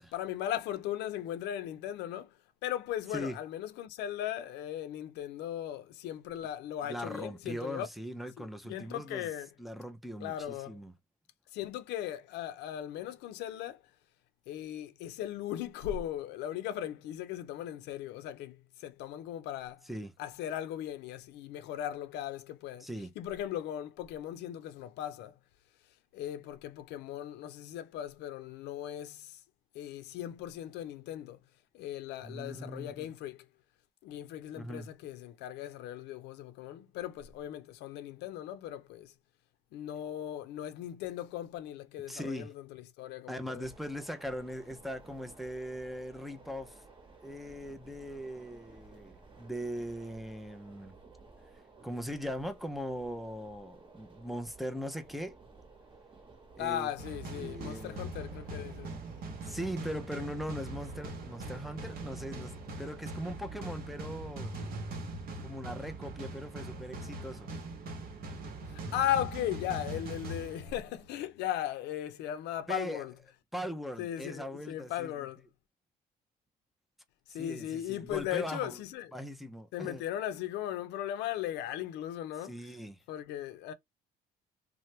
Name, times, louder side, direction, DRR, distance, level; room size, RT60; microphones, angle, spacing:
voice 1, 0.1-7.9 8.4-9.5 10.2-10.8 11.5-13.8 14.5-19.8 20.2-22.9 23.2-25.4 26.1-29.4 29.7-31.4 31.7-33.5 34.0-39.1 39.7-43.7 56.6-58.9 68.7-73.1 74.0-75.5 77.3-79.1 79.7-82.8 83.1-83.7, left 11 dB, 85° left, 0.5 m, -38 dB
voice 2, 6.9-9.3 9.6-10.9 19.9-20.1 22.8-23.1 32.2-33.1 34.6-34.9 42.1-42.5 43.3-46.8 47.2-51.0 51.8-55.3 56.6-56.9 57.3-58.1 59.4-64.6 65.4-67.5 72.7-73.0 73.5-75.1 77.3-78.8 79.1-80.0 82.4-83.0, equal, ahead, 0.4 m, -40 dB
sound 1, 43.6-63.1, right 3 dB, 30° right, 1.1 m, -55 dB
sound 2, 57.0-71.2, right 2 dB, 60° right, 1.0 m, -41 dB
2.9 x 2.1 x 3.1 m
cardioid pair, 110°, 17 cm